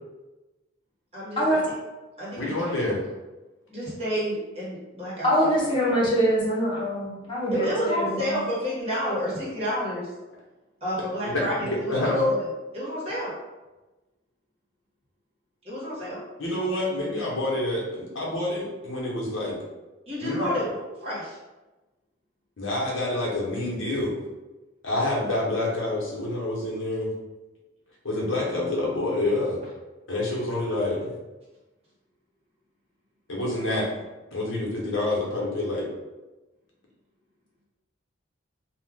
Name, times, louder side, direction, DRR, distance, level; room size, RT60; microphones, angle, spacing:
voice 1, 1.1-1.6 2.2-2.7 3.7-5.3 7.5-10.1 10.8-12.5 12.7-13.3 15.6-16.2 20.1-21.4 25.0-25.1, equal, 30° right, -8 dB, 1.4 m, -30 dB
voice 2, 2.3-3.0 11.3-12.3 16.4-19.6 20.2-20.5 22.6-24.1 24.8-27.1 28.0-29.6 30.1-31.1 33.3-33.9 34.3-35.9, left 2 dB, 70° left, -4 dB, 1.0 m, -27 dB
voice 3, 5.2-8.4, equal, 25° left, -7 dB, 0.9 m, -24 dB
2.7 x 2.4 x 3.6 m, 1.1 s
head